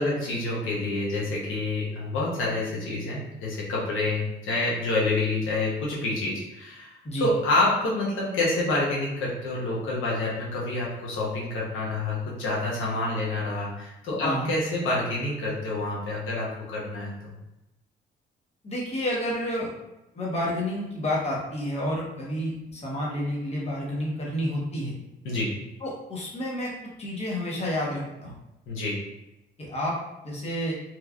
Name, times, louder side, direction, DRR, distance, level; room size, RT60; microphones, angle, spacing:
voice 1, 0.0-17.3 25.2-25.5 28.7-29.0, left 2 dB, 85° left, -4 dB, 0.8 m, -28 dB
voice 2, 18.6-19.7 20.1-24.9 25.8-26.7 27.0-28.4 29.6-30.0 30.2-30.7, equal, 30° left, -4 dB, 0.9 m, -30 dB
3.1 x 2.3 x 2.3 m, 0.92 s
cardioid pair, 90°, 20 cm